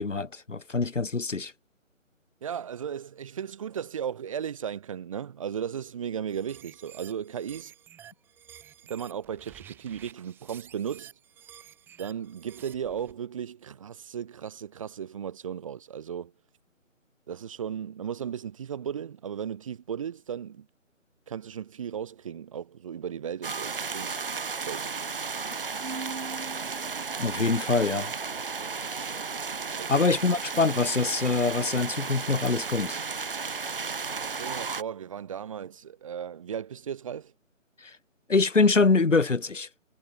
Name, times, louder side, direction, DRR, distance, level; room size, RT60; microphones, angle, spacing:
voice 1, 0.0-1.5 27.2-28.1 29.6-33.0 37.8-38.0 38.3-39.7, left 4 dB, 65° left, 5.5 m, -24 dB
voice 2, 2.4-7.7 8.9-11.1 12.0-16.3 17.3-20.7 21.3-24.2 24.6-25.0 29.7-30.1 34.2-37.3, right 8 dB, 25° right, 7.1 m, -36 dB
sound 1, 6.3-13.1, right 10 dB, 5° right, 6.5 m, -51 dB
sound 2, 23.4-34.8, right 5 dB, 45° right, 1.4 m, -34 dB
Keyboard (musical), 25.8-27.6, right 4 dB, 65° right, 6.7 m, -41 dB
figure-of-eight pair, 170°, 39 cm